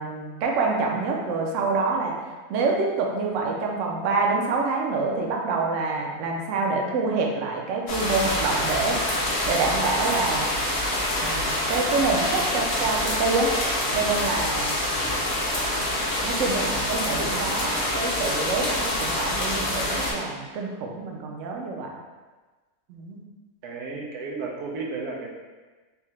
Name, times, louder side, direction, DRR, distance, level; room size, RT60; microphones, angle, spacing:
voice 1, 0.0-2.1 2.5-9.0 9.4-10.5 11.2-13.5 13.9-14.8 15.8-15.9 16.2-21.9 22.9-23.2, right 3 dB, 65° right, 0 dB, 0.8 m, -26 dB
sound 1, 7.9-20.1, left 1 dB, 50° left, 0.7 m, -26 dB
voice 2, 23.6-25.3, right 4 dB, 90° right, -1 dB, 1.2 m, -33 dB
3.5 x 2.7 x 3.1 m, 1.3 s
omnidirectional pair, 1.6 m